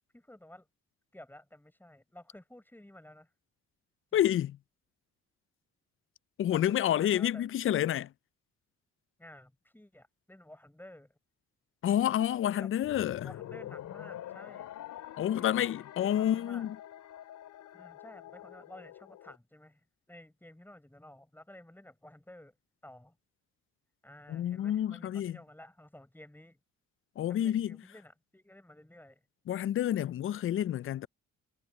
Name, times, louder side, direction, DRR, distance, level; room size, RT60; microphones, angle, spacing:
voice 1, 0.1-0.7 1.1-3.3 4.1-4.4 6.5-7.5 9.2-11.2 12.6-14.7 15.2-15.5 16.0-16.7 17.7-22.6 22.8-23.2 24.0-26.6 27.3-29.2, left 1 dB, 5° left, 5.7 m, -53 dB
voice 2, 4.1-4.6 6.4-8.1 11.8-13.3 15.2-16.8 24.3-25.4 27.2-27.8 29.5-31.1, left 11 dB, 45° left, 0.4 m, -29 dB
sound 1, 12.8-19.4, left 12 dB, 80° left, 3.2 m, -46 dB
cardioid pair, 90°, 30 cm